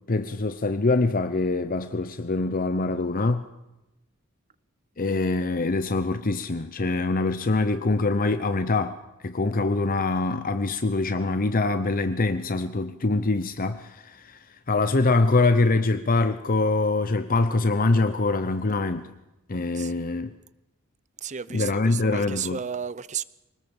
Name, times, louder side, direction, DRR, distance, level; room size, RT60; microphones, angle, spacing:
voice 1, 0.0-3.5 5.0-19.1 19.5-20.3 21.5-22.6, left 3 dB, 40° left, 0.8 m, -24 dB
voice 2, 21.2-23.2, right 7 dB, 35° right, 0.7 m, -33 dB
24.5 x 19.5 x 7.2 m
head